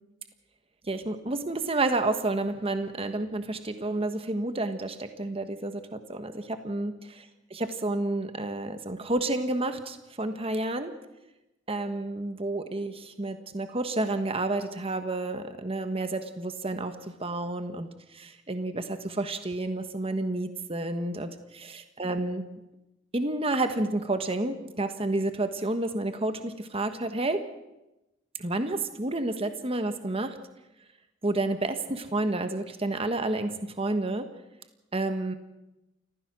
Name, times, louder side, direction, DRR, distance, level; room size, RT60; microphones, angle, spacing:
voice 1, 0.9-6.9 7.5-10.9 11.7-16.9 17.2-22.4 23.1-27.4 28.4-30.4 31.2-34.2 34.9-35.3, right 2 dB, 30° right, 8 dB, 1.3 m, -30 dB
28.5 x 15.0 x 6.2 m, 0.96 s
head